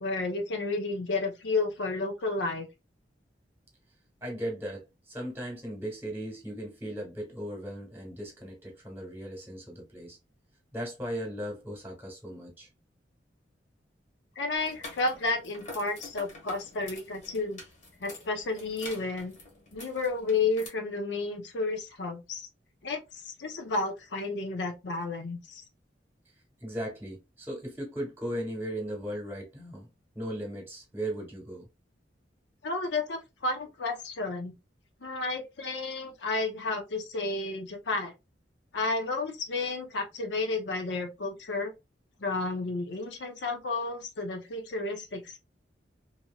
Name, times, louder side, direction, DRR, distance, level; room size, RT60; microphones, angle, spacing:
voice 1, 0.0-2.7 14.4-17.6 18.0-19.3 19.7-22.4 22.8-25.6 32.6-34.5 35.0-38.1 38.7-41.7 42.2-45.4, left 3 dB, 75° left, 0.6 m, -32 dB
voice 2, 4.2-10.2 10.7-12.7 26.6-29.9 30.1-31.7, right 1 dB, 10° right, 1.2 m, -37 dB
sound 1, 14.6-20.7, left 2 dB, 45° left, 1.2 m, -47 dB
2.9 x 2.7 x 2.2 m
head